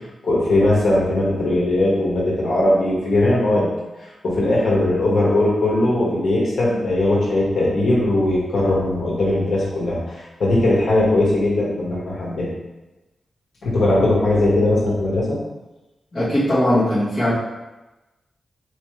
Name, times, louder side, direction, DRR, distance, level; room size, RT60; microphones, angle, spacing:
voice 1, 0.2-3.7 4.0-12.5 13.6-15.4, left 1 dB, 70° left, -5 dB, 1.4 m, -19 dB
voice 2, 16.1-17.3, left 1 dB, 35° left, -10 dB, 1.3 m, -19 dB
4.2 x 3.2 x 3.2 m, 1.1 s
wide cardioid pair, 165°, 0 cm